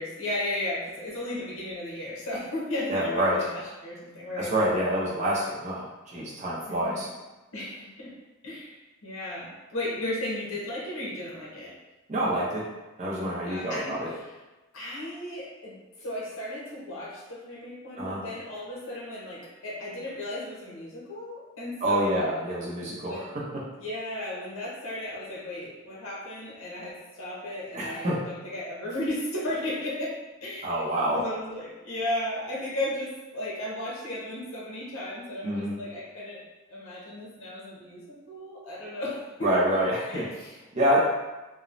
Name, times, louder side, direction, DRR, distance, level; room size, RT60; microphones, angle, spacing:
voice 1, 0.0-4.5 6.7-7.1 7.5-8.1 8.4-8.7 9.0-11.7 13.4-13.9 14.7-22.3 23.1-23.3 23.8-30.1 30.4-30.7 31.1-36.4 36.7-39.5 40.1-40.6, left 1 dB, 80° left, -5 dB, 0.9 m, -35 dB
voice 2, 2.9-3.4 4.4-7.1 12.1-12.6 13.0-14.1 18.0-18.2 21.8-23.4 27.7-28.2 30.6-31.2 35.4-35.8 39.4-40.3 40.7-41.0, right 1 dB, 35° right, -5 dB, 0.5 m, -27 dB
3.0 x 2.0 x 2.5 m, 1.1 s
head